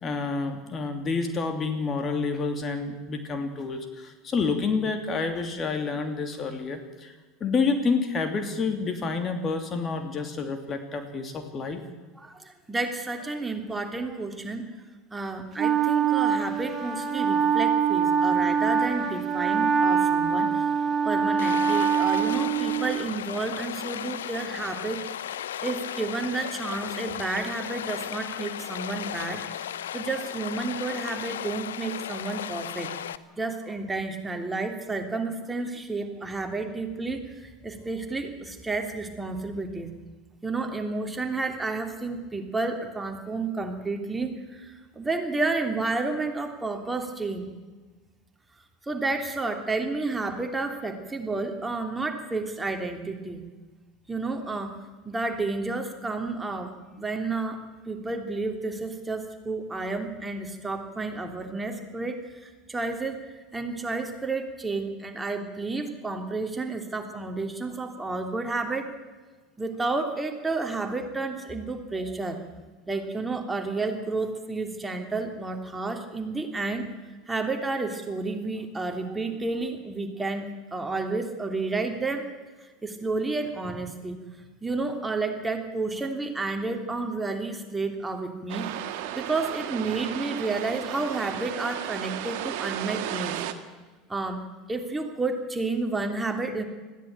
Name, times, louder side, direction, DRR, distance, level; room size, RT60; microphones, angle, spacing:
voice 1, 0.0-7.1 7.4-11.8, left 4 dB, 30° left, 6 dB, 2.9 m, -28 dB
voice 2, 12.2-14.7 15.1-20.7 21.0-25.0 25.6-29.4 29.9-32.9 33.4-39.9 40.4-47.4 48.9-53.4 54.1-54.7 55.0-57.6 57.9-68.9 69.6-72.4 72.9-76.9 77.3-82.2 82.6-84.2 84.6-88.7 89.1-93.4 94.1-94.4 94.7-96.6, right 3 dB, 15° right, 4 dB, 3.0 m, -31 dB
Wind instrument woodwind instrument, 15.6-23.1, right 6 dB, 30° right, 2.0 m, -24 dB
Stream, 21.4-33.2, left 10 dB, 75° left, 0.7 m, -35 dB
sound 1, 88.5-93.5, right 11 dB, 60° right, 1.8 m, -34 dB
20.5 x 15.0 x 9.0 m, 1.3 s
hypercardioid pair, 80°, 0 cm